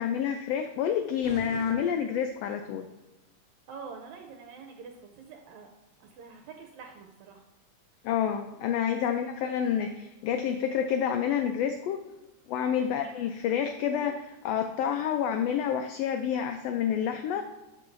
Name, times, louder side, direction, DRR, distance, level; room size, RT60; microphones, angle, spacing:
voice 1, 0.0-2.9 8.0-12.0 12.5-17.4, left 8 dB, 80° left, 6 dB, 1.5 m, -28 dB
sound 1, 1.2-2.7, right 2 dB, 60° right, 0.4 m, -46 dB
voice 2, 3.7-5.7 6.0-7.5 8.9-9.0 12.7-12.9, right 5 dB, 80° right, 3 dB, 2.0 m, -46 dB
13.0 x 4.7 x 2.6 m, 1.0 s
omnidirectional pair, 3.3 m